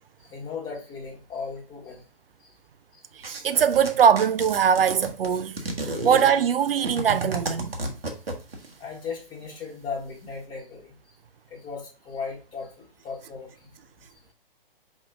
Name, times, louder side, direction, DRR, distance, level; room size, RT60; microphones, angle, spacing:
voice 1, 0.2-2.0 2.4-2.5 2.9-3.0 3.5-3.6 8.8-11.0 11.5-13.7, left 5 dB, 15° left, 1.1 m, -37 dB
sound 1, 3.2-8.7, right 1 dB, 90° right, 1.2 m, -32 dB
voice 2, 3.3-7.7, right 8 dB, 70° right, 0.5 m, -21 dB
5.2 x 2.6 x 3.4 m
figure-of-eight pair, 130°, 29 cm